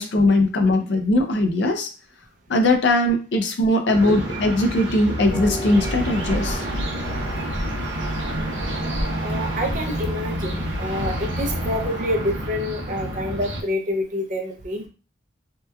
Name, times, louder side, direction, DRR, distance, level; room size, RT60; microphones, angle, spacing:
voice 1, 0.0-1.9 2.5-6.6, left 1 dB, 65° left, 5 dB, 0.4 m, -20 dB
sound 1, 3.9-13.6, right 1 dB, 85° right, 0.6 m, -29 dB
Harp, 5.2-12.0, equal, 25° left, 1.0 m, -33 dB
voice 2, 9.2-14.9, left 1 dB, 45° right, 3 dB, 0.4 m, -27 dB
2.8 x 2.2 x 2.2 m, 0.36 s
head